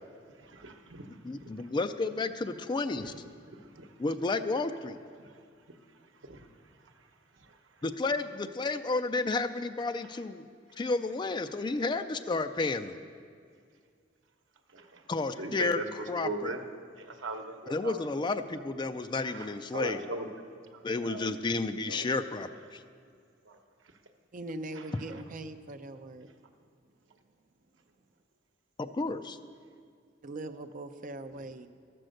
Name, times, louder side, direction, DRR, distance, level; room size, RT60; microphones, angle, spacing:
voice 1, 0.5-1.2 1.4-1.5 3.8-3.9 5.2-5.3 6.2-6.5 14.7-15.0 15.4-15.9 16.2-16.6 17.0-18.0 19.3-19.5 19.7-20.3 21.0-21.3 21.9-22.0 23.5-23.6, right 2 dB, 80° right, 4 dB, 1.0 m, -38 dB
voice 2, 1.2-3.1 4.0-5.0 7.8-10.4 10.8-13.0 15.1-16.5 17.7-20.1 20.8-22.8 28.8-29.4, left 3 dB, 25° left, 9 dB, 0.4 m, -31 dB
voice 3, 24.3-26.3 30.2-31.7, right 2 dB, 45° right, 8 dB, 0.5 m, -41 dB
12.0 x 7.7 x 6.4 m, 2.2 s
head